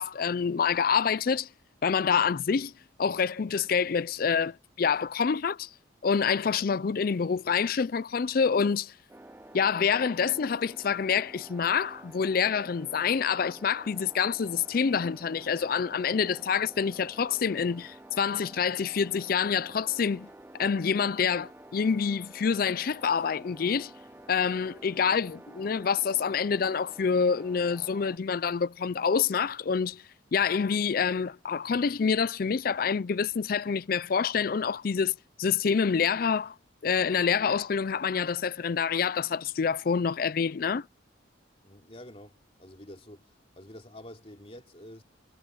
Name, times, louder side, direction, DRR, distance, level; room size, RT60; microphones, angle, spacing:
voice 1, 0.0-1.5 1.8-2.7 3.0-5.7 6.0-8.9 9.5-20.3 20.6-23.9 24.3-30.0 30.3-35.1 35.4-36.5 36.8-40.9, left 6 dB, 50° left, 0.4 m, -27 dB
sound 1, 9.1-28.2, right 1 dB, 10° right, 0.6 m, -50 dB
voice 2, 41.6-45.0, left 1 dB, 35° left, 3.5 m, -48 dB
head